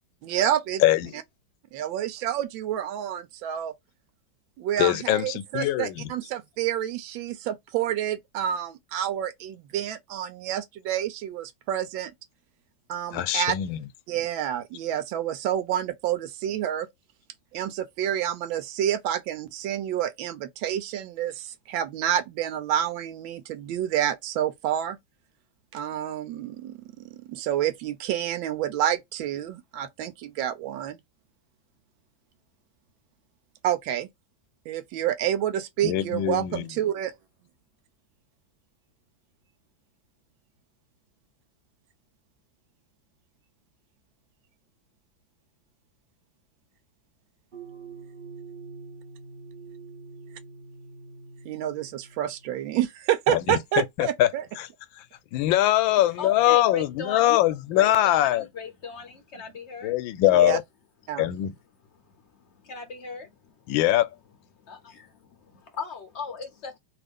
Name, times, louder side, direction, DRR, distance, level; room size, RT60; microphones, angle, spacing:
voice 1, 0.2-0.8 1.7-3.7 4.6-12.1 12.9-13.6 14.1-16.9 17.5-25.0 25.7-26.8 27.0-31.0 33.6-34.1 34.7-37.1 51.4-54.4 60.3-60.6 61.1-61.3, right 11 dB, 90° right, 1.4 m, -28 dB
voice 2, 0.8-1.1 4.8-6.1 13.1-13.8 35.8-36.7 53.3-54.3 54.6-54.7 55.0-55.1 55.3-58.5 59.8-60.6 61.2-61.5 63.7-64.1, left 13 dB, 85° left, 1.3 m, -22 dB
sound 1, 47.5-52.7, right 4 dB, 60° right, 0.5 m, -45 dB
voice 3, 56.2-57.4 57.7-59.9 62.4-63.3 63.6-63.7 64.6-66.8, left 5 dB, 65° left, 0.6 m, -38 dB
3.2 x 2.4 x 3.5 m
omnidirectional pair, 2.1 m